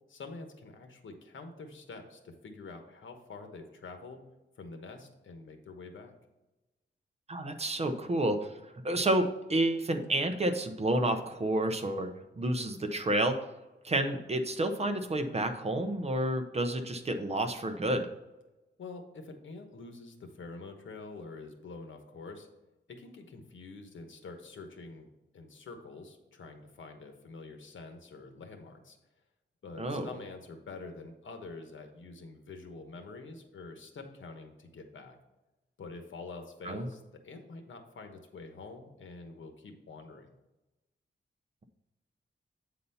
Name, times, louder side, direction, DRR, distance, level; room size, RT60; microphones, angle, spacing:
voice 1, 0.1-4.2 4.6-6.1 18.8-22.5 22.9-25.1 25.3-29.0 29.6-35.2 35.8-40.3, left 3 dB, 80° left, 5 dB, 1.1 m, -46 dB
voice 2, 7.3-8.5 8.8-12.1 12.4-13.4 13.8-18.1 29.8-30.1 36.6-36.9, right 1 dB, 30° right, 7 dB, 0.8 m, -30 dB
8.4 x 4.1 x 5.5 m, 1.0 s
wide cardioid pair, 140°, 20 cm